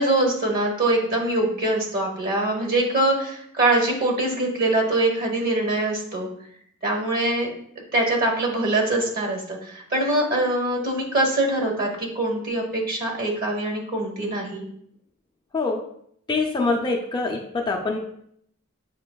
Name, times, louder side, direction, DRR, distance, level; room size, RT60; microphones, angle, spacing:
voice 1, 0.0-6.3 6.8-7.5 7.9-14.7, right 2 dB, 45° right, 1 dB, 1.1 m, -23 dB
voice 2, 16.3-18.0, left 3 dB, 20° left, 0 dB, 0.4 m, -24 dB
7.4 x 2.9 x 2.2 m, 0.69 s
head